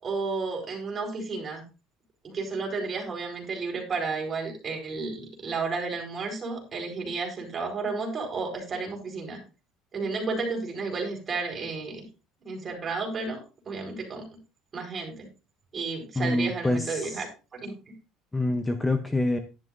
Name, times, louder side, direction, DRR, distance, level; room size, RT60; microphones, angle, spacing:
voice 1, 0.0-1.6 2.2-9.4 9.9-12.0 12.4-13.4 13.6-14.2 14.7-15.3 15.7-17.3 17.5-17.7, right 4 dB, 25° right, 0 dB, 4.4 m, -32 dB
voice 2, 16.2-17.2 18.3-19.4, left 2 dB, 10° left, 7 dB, 0.7 m, -26 dB
11.5 x 11.0 x 2.6 m, 0.31 s
cardioid pair, 145°, 0 cm